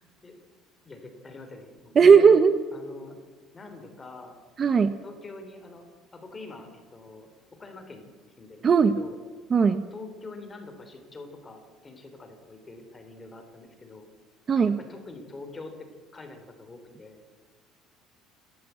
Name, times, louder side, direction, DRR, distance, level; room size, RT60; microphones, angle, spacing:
voice 1, 0.8-2.4 2.7-3.2 3.5-4.4 5.0-5.8 6.1-7.3 7.6-9.1 9.9-14.1 14.9-15.9 16.1-17.2, left 3 dB, 15° left, 6 dB, 3.4 m, -44 dB
voice 2, 2.0-2.5 4.6-4.9 8.6-9.0 9.5-9.9 14.5-14.8, right 6 dB, 25° right, 11 dB, 0.8 m, -17 dB
28.5 x 13.5 x 8.1 m, 1.5 s
cardioid pair, 170°, 0 cm